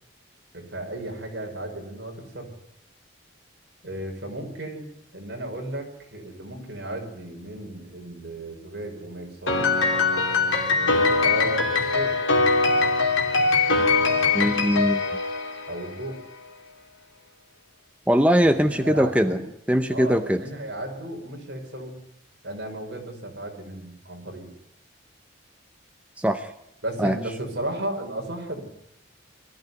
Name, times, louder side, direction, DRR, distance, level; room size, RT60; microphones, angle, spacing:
voice 1, 0.5-2.5 3.8-9.9 10.8-12.1 15.7-16.2 18.4-19.4 19.9-22.0 22.4-24.6 26.8-28.7, right 1 dB, 55° right, 1 dB, 5.4 m, -35 dB
Piano, 9.5-16.0, left 3 dB, 80° left, 3.4 m, -22 dB
voice 2, 14.3-15.0 18.1-19.4 19.7-20.4 26.2-26.5 27.0-27.2, equal, 5° right, 7 dB, 0.7 m, -21 dB
21.5 x 14.0 x 9.6 m, 0.81 s
head